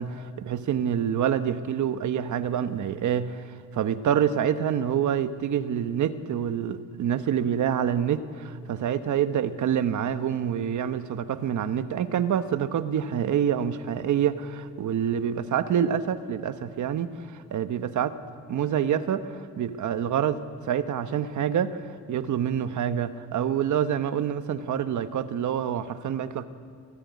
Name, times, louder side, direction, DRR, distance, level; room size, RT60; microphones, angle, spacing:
voice 1, 0.0-3.4 3.7-17.1 17.5-18.1 18.5-20.4 20.7-21.8 22.1-26.5, right 9 dB, 65° right, 11 dB, 1.1 m, -26 dB
27.0 x 15.0 x 9.4 m, 2.2 s
wide cardioid pair, 155°, 32 cm